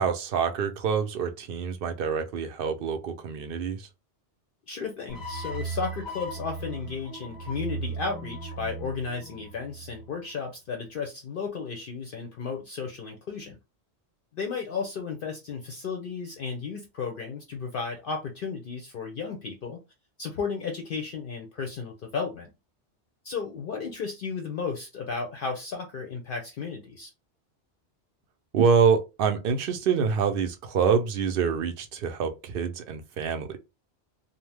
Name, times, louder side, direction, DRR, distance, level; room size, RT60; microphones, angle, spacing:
voice 1, 0.0-3.9 28.5-33.6, right 6 dB, 60° right, 0.7 m, -26 dB
voice 2, 4.7-13.6 14.3-19.8 20.2-22.5 23.2-27.1, left 5 dB, 60° left, 0.7 m, -34 dB
sound 1, 5.1-10.3, right 3 dB, 20° left, 0.6 m, -37 dB
2.6 x 2.1 x 3.2 m
omnidirectional pair, 1.2 m